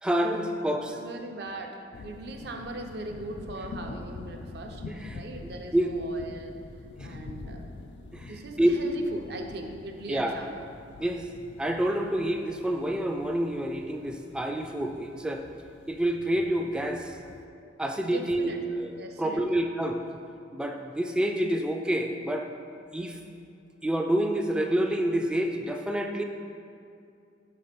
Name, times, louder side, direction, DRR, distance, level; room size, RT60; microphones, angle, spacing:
voice 1, 0.0-0.9 4.9-5.2 5.7-5.9 7.0-7.1 8.1-8.7 10.1-10.4 11.0-11.3 11.6-15.4 15.9-17.2 17.8-18.5 18.8-18.9 19.2-20.0 20.5-22.5 22.9-23.2 23.8-26.2, right 1 dB, 5° right, 3 dB, 0.3 m, -28 dB
voice 2, 0.9-4.8 5.1-6.5 7.0-7.7 8.0-10.7 18.0-18.6 19.0-19.6, right 2 dB, 65° right, 4 dB, 0.6 m, -40 dB
sound 1, 1.9-17.4, left 3 dB, 75° left, 0.4 m, -45 dB
5.9 x 4.2 x 5.1 m, 2.5 s
head